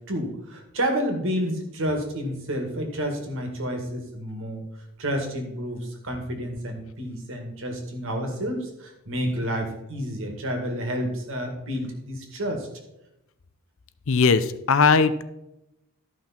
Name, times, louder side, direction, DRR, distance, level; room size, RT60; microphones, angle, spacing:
voice 1, 0.1-4.6 5.0-12.7, equal, 60° right, 3 dB, 2.2 m, -30 dB
voice 2, 14.1-15.2, left 4 dB, 60° left, 13 dB, 0.6 m, -19 dB
13.0 x 5.9 x 4.4 m, 0.87 s
head